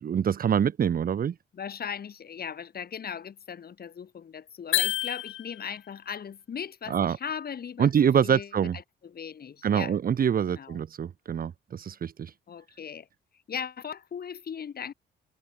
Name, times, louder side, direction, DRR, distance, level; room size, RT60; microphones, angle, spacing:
voice 1, 0.0-1.3 6.9-7.2 7.8-8.8 9.6-12.3, right 8 dB, 45° right, 1.1 m, -25 dB
voice 2, 1.5-7.9 8.2-10.0 10.5-10.8 12.5-13.1 13.5-14.9, left 7 dB, 50° left, 5.5 m, -38 dB
sound 1, 4.7-5.9, left 15 dB, 90° left, 2.8 m, -28 dB
cardioid pair, 90°, 20 cm